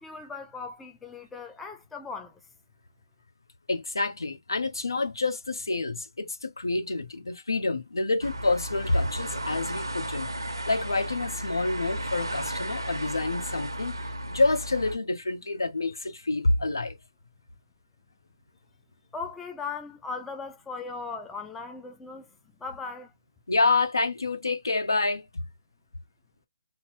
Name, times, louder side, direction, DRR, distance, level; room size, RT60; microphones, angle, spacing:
voice 1, 0.0-2.4 19.1-23.1, left 4 dB, 5° left, 0.4 m, -38 dB
voice 2, 3.7-10.3 10.7-14.0 14.3-17.0 23.5-25.4, left 3 dB, 80° left, 0.6 m, -27 dB
sound 1, 8.2-15.0, right 1 dB, 90° right, 0.6 m, -34 dB
2.9 x 2.0 x 3.0 m
figure-of-eight pair, 145°, 2 cm